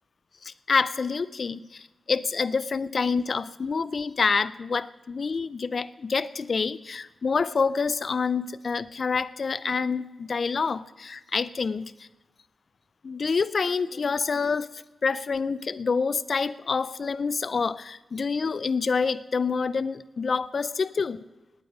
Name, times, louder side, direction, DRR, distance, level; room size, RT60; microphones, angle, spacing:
voice 1, 0.4-12.1 13.0-21.2, left 5 dB, 50° left, 17 dB, 0.4 m, -27 dB
18.5 x 9.6 x 5.2 m, 1.1 s
wide cardioid pair, 115°, 0 cm